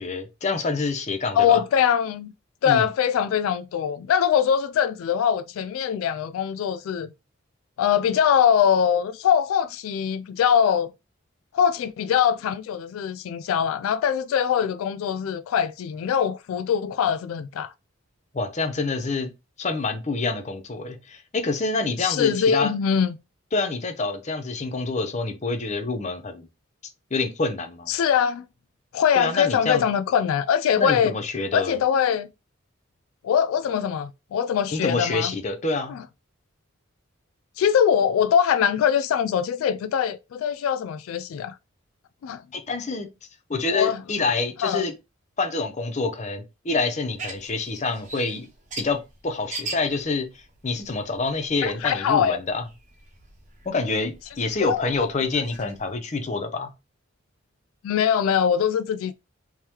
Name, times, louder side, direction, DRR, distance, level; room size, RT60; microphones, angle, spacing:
voice 1, 0.0-1.6 2.7-2.8 18.3-19.3 19.6-22.7 23.5-26.5 27.1-27.9 29.1-29.9 30.8-31.7 34.7-36.0 42.5-43.1 43.5-44.9 45.4-48.5 48.8-50.3 50.6-52.6 53.7-56.7, left 3 dB, 35° left, 0.6 m, -27 dB
voice 2, 1.3-2.3 2.6-7.1 7.8-10.9 11.5-17.7 22.0-23.2 27.9-28.4 28.9-31.1 31.5-32.3 33.2-35.3 35.9-36.0 37.6-41.6 42.2-42.4 43.7-44.0 44.6-44.8 51.6-52.4 54.6-54.8 57.8-59.1, left 8 dB, 85° left, 0.3 m, -22 dB
sound 1, 47.0-56.0, right 3 dB, 35° right, 0.9 m, -42 dB
3.6 x 3.1 x 2.8 m
head